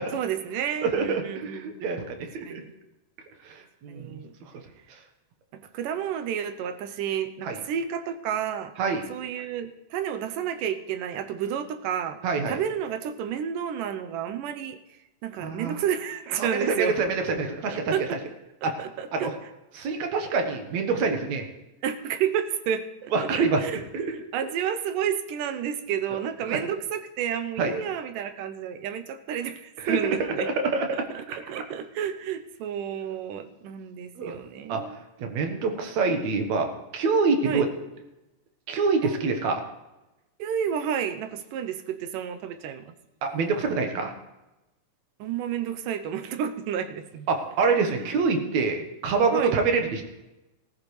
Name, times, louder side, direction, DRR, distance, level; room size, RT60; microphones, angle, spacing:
voice 1, 0.1-1.7 2.5-2.7 3.9-4.3 5.5-8.7 9.1-12.2 12.5-14.8 15.2-17.0 17.7-18.2 18.6-19.3 21.8-30.5 31.1-35.0 37.4-37.6 39.0-39.1 40.4-42.9 45.2-47.3 49.3-49.5, right 8 dB, 85° right, 10 dB, 2.4 m, -31 dB
voice 2, 0.8-2.6 3.4-4.2 7.4-7.6 8.8-9.1 12.2-12.6 15.4-15.8 16.4-17.9 18.6-18.8 19.1-19.3 19.7-21.5 23.1-23.6 23.9-24.0 26.1-26.2 26.5-26.6 27.6-27.8 29.8-31.4 34.2-34.4 34.7-34.8 35.2-36.7 36.9-37.7 38.7-39.6 43.2-44.1 47.3-50.0, right 4 dB, 65° right, 5 dB, 2.4 m, -26 dB
19.0 x 14.0 x 3.3 m, 1.0 s
omnidirectional pair, 3.8 m